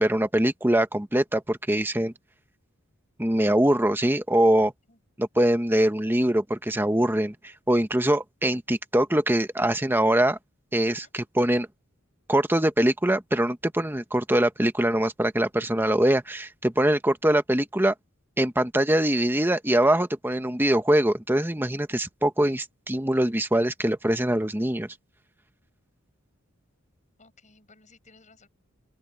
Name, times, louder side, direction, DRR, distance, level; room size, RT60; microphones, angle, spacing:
voice 1, 0.0-2.1 3.2-4.7 5.2-10.4 10.7-11.7 12.3-17.9 18.4-24.9, right 1 dB, 10° right, 1.1 m, -23 dB
voice 2, 27.2-28.5, left 3 dB, 35° left, 7.9 m, -57 dB
open air
head